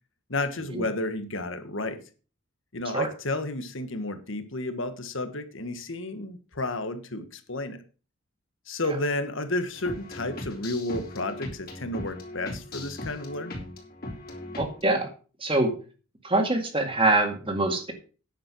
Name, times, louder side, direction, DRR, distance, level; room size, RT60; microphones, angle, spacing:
voice 1, 0.3-2.0 2.7-7.8 8.7-13.6, left 2 dB, 65° left, 9 dB, 1.5 m, -32 dB
sound 1, 9.7-14.8, left 1 dB, 45° left, 3.7 m, -39 dB
voice 2, 14.6-15.1 15.4-15.7 16.2-17.9, right 2 dB, 25° right, 5 dB, 2.0 m, -24 dB
10.0 x 7.5 x 6.1 m, 0.37 s
head